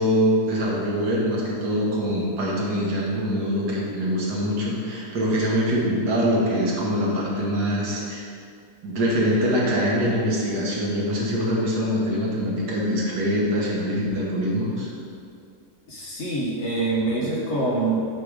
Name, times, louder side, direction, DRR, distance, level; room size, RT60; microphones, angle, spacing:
voice 1, 0.0-8.3 8.8-14.9 17.2-17.3, equal, 80° right, -4 dB, 1.8 m, -24 dB
voice 2, 15.9-18.1, right 2 dB, 50° left, -4 dB, 1.2 m, -25 dB
8.4 x 3.2 x 5.0 m, 2.3 s
omnidirectional pair, 1.7 m